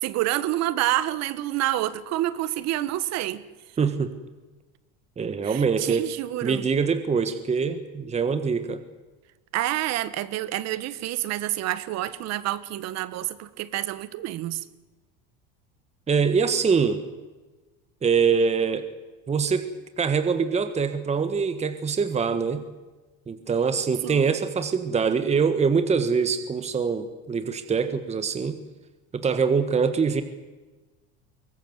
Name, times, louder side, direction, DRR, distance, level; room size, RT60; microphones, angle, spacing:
voice 1, 0.0-3.4 5.4-6.7 9.5-14.6 24.0-24.2, right 14 dB, 55° right, 1.4 m, -28 dB
voice 2, 3.8-4.1 5.2-6.1 6.4-8.8 16.1-17.0 18.0-18.9 19.3-19.6 20.0-22.6 23.3-28.6 29.1-30.2, right 5 dB, 20° right, 1.5 m, -24 dB
23.0 x 19.0 x 8.1 m
supercardioid pair, 120°, 31 cm